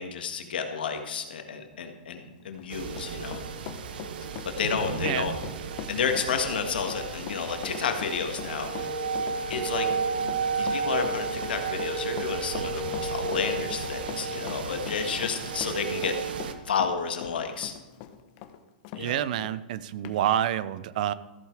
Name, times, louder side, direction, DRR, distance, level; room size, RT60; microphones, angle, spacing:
voice 1, 0.0-3.4 4.4-5.3 5.9-8.9 9.5-16.1 16.6-17.7 18.9-19.2, left 6 dB, 85° left, 5 dB, 1.8 m, -31 dB
Run, 2.4-19.1 19.4-19.5 20.0-20.2, left 10 dB, 40° left, 1.0 m, -41 dB
sound 1, 2.7-16.5, right 4 dB, 75° right, 1.1 m, -32 dB
voice 2, 19.0-21.1, right 11 dB, 55° right, 17 dB, 0.5 m, -28 dB
14.0 x 8.0 x 4.8 m, 1.2 s
hypercardioid pair, 150°, 5 cm